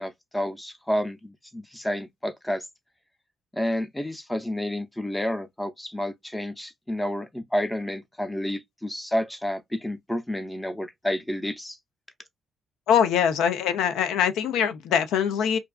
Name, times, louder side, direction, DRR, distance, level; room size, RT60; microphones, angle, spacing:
voice 1, 0.0-2.7 3.5-11.8, left 1 dB, 10° left, 0.6 m, -30 dB
voice 2, 12.9-15.6, left 8 dB, 85° left, 0.5 m, -23 dB
2.5 x 2.3 x 2.3 m
cardioid pair, 90°, 0 cm